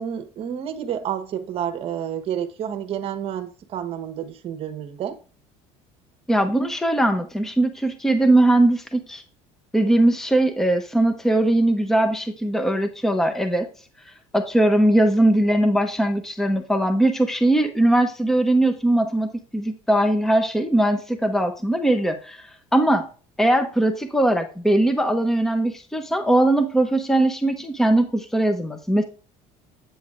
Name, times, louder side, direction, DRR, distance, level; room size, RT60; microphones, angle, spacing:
voice 1, 0.0-5.2, right 9 dB, 45° right, 1.1 m, -30 dB
voice 2, 6.3-9.2 9.7-13.7 14.3-22.4 22.7-23.1 23.4-29.0, right 1 dB, 5° left, 0.7 m, -20 dB
8.8 x 7.0 x 2.5 m
cardioid pair, 125°, 13 cm